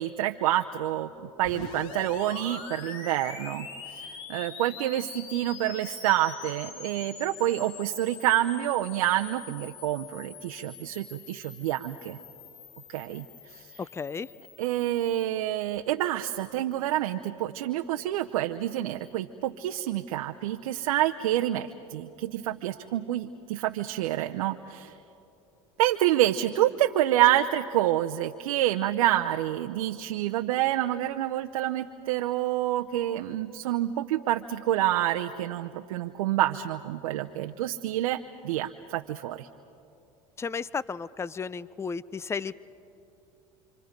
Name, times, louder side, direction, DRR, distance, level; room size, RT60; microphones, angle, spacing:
voice 1, 0.0-12.2 12.9-13.9 14.6-24.9 25.8-39.5, right 13 dB, 85° right, 5 dB, 0.7 m, -28 dB
sound 1, 1.4-15.3, left 6 dB, 75° left, 2.3 m, -44 dB
voice 2, 13.9-14.3 40.4-42.5, left 5 dB, 15° left, 19 dB, 0.5 m, -33 dB
28.5 x 25.5 x 5.2 m, 2.7 s
hypercardioid pair, 90°, 18 cm